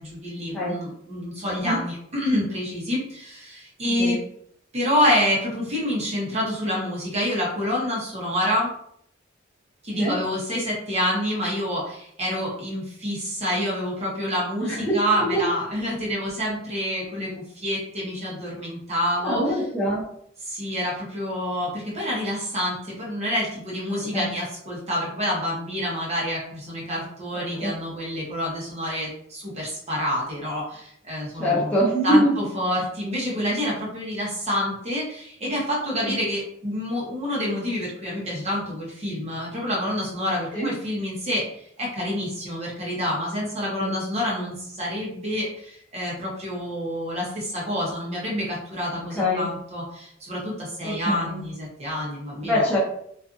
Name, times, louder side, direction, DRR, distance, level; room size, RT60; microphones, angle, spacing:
voice 1, 0.0-4.2 4.7-8.7 9.8-19.4 20.5-31.7 32.0-52.6, equal, 35° right, -4 dB, 0.9 m, -27 dB
voice 2, 19.2-20.0 23.9-24.3 27.3-27.7 31.3-32.3 36.0-36.1 40.5-40.7 43.8-43.9 48.9-49.5 50.8-51.4 52.4-52.8, equal, 10° left, -8 dB, 0.7 m, -24 dB
2.5 x 2.4 x 2.5 m, 0.68 s
head